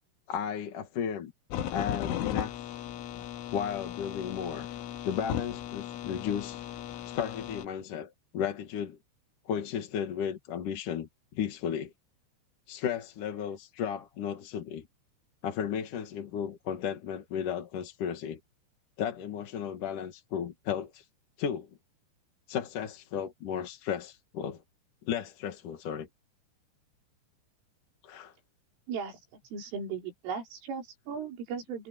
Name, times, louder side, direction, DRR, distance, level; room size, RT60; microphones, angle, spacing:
voice 1, 0.3-1.3 1.7-2.5 3.5-4.7 5.0-6.6 7.1-9.0 9.5-11.9 12.7-14.8 15.4-18.4 19.0-21.0 21.4-21.7 22.5-24.6 25.0-26.1 28.0-28.3, left 8 dB, 50° left, 2.8 m, -34 dB
sound 1, 1.5-7.7, left 10 dB, 85° left, 4.1 m, -36 dB
voice 2, 28.9-29.2 29.5-31.9, right 6 dB, 80° right, 7.5 m, -37 dB
omnidirectional pair, 5.6 m